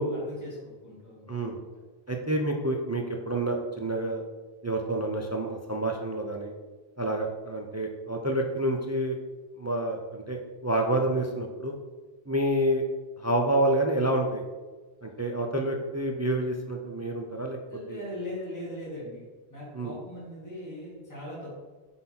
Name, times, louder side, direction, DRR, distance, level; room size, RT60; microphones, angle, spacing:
voice 1, 0.0-1.7 17.7-21.5, left 1 dB, 15° left, -6 dB, 2.0 m, -40 dB
voice 2, 2.1-4.2 4.6-6.5 7.0-9.2 9.6-11.8 12.3-12.9 13.2-14.4 15.0-17.6 17.9-18.0 19.7-19.9, right 1 dB, 25° right, 2 dB, 0.4 m, -28 dB
5.7 x 3.9 x 5.8 m, 1.3 s
omnidirectional pair, 1.1 m